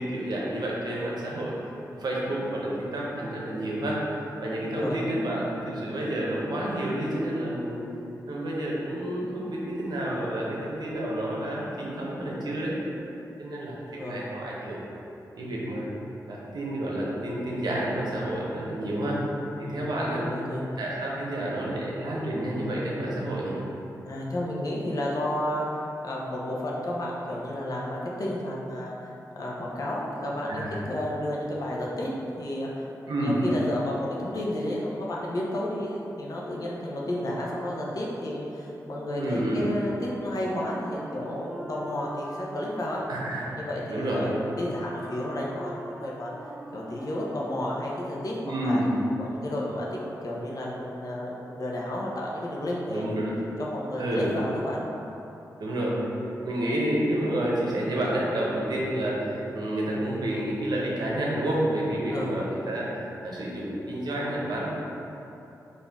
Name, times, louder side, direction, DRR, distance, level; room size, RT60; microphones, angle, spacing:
voice 1, 0.0-1.6 1.9-4.1 4.4-7.8 8.3-12.8 13.4-14.8 15.4-15.9 16.3-19.3 19.6-20.2 20.8-23.6 30.5-30.8 33.1-33.4 39.2-39.6 43.1-43.5 43.9-44.5 48.4-48.9 52.9-53.3 54.0-54.3 55.6-56.1 56.4-62.9 63.2-64.7, right 1 dB, 75° right, -5 dB, 0.8 m, -29 dB
voice 2, 4.7-5.0 14.0-14.2 19.6-20.7 24.0-29.1 29.4-32.1 32.4-43.0 43.5-46.3 46.7-48.8 49.2-49.9 50.2-53.1 53.6-54.8 62.1-62.3, left 1 dB, 55° left, -4 dB, 0.8 m, -32 dB
Wind instrument woodwind instrument, 39.9-48.1, right 1 dB, 5° left, 0.4 m, -44 dB
4.2 x 2.7 x 3.5 m, 2.9 s
cardioid pair, 65°, 7 cm